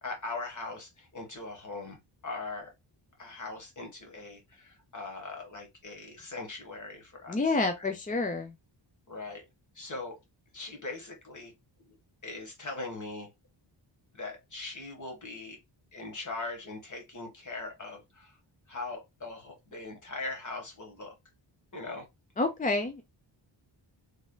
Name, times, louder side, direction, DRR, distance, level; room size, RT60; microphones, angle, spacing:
voice 1, 0.0-2.7 3.2-7.9 9.1-9.4 9.7-10.2 10.5-11.5 11.9-12.0 12.2-13.3 14.1-15.6 15.9-18.4 18.7-21.1 21.7-22.1, left 3 dB, 40° left, 1.4 m, -40 dB
voice 2, 7.3-8.5 22.4-23.0, left 3 dB, 20° left, 0.4 m, -28 dB
4.2 x 3.4 x 2.2 m
wide cardioid pair, 175°, 47 cm